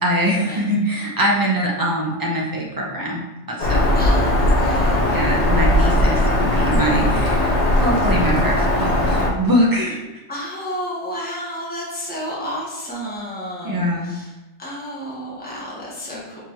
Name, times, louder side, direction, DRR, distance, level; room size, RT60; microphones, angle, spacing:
voice 1, 0.0-4.0 5.1-7.5 7.8-10.0 13.6-14.1, equal, 20° right, -3 dB, 0.7 m, -23 dB
Bird vocalization bird call bird song, 3.6-9.3, left 1 dB, 45° left, 0.6 m, -18 dB
voice 2, 3.9-5.0 10.3-14.3 14.6-16.4, equal, 10° left, -6 dB, 1.0 m, -31 dB
4.6 x 3.9 x 3.0 m, 1.0 s
omnidirectional pair, 1.2 m